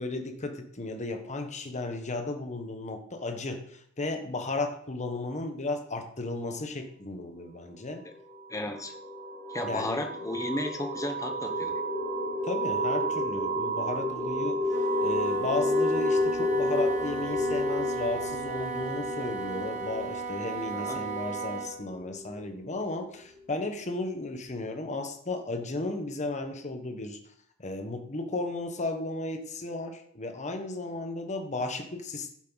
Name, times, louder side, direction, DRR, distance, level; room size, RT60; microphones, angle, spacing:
voice 1, 0.0-8.0 9.6-10.0 12.4-14.6 15.0-27.2 27.6-32.3, left 2 dB, 35° left, 5 dB, 1.3 m, -34 dB
sound 1, 8.2-22.7, equal, 5° right, 2.9 m, -31 dB
voice 2, 8.5-8.9 9.5-11.7 20.7-21.0, left 1 dB, 15° left, 5 dB, 1.1 m, -34 dB
Wind instrument woodwind instrument, 14.6-21.8, right 3 dB, 35° right, 1.7 m, -36 dB
10.5 x 7.4 x 4.1 m, 0.67 s
head